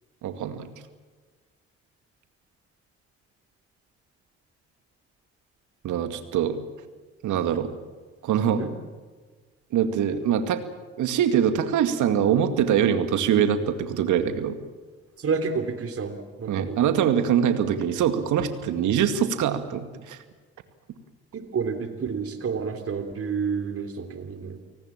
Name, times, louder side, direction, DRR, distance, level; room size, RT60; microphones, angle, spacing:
voice 1, 0.2-0.7 5.8-6.6 7.2-7.7 8.2-8.6 9.7-10.6 11.0-14.6 16.5-20.2, right 9 dB, 65° right, 9 dB, 2.2 m, -23 dB
voice 2, 15.2-16.8 21.5-24.6, right 5 dB, 45° right, 7 dB, 3.3 m, -29 dB
30.0 x 19.0 x 7.4 m, 1.4 s
hypercardioid pair, 50°, 33 cm